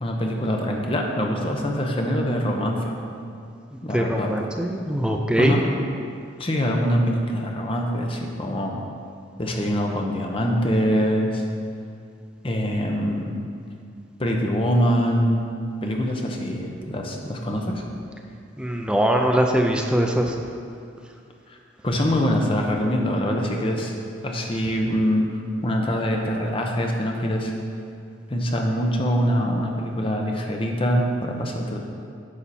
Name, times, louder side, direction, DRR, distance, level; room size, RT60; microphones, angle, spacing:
voice 1, 0.0-2.9 3.8-4.4 5.4-5.6 6.4-8.8 9.4-11.4 12.4-13.4 14.2-15.5 15.8-17.8 21.5-21.6 21.8-23.9 24.2-25.3 25.6-27.5 28.3-31.8, equal, 25° left, 1 dB, 0.9 m, -24 dB
voice 2, 3.9-5.6 18.6-20.3, right 1 dB, 5° right, 2 dB, 0.5 m, -22 dB
10.0 x 5.7 x 4.2 m, 2.4 s
head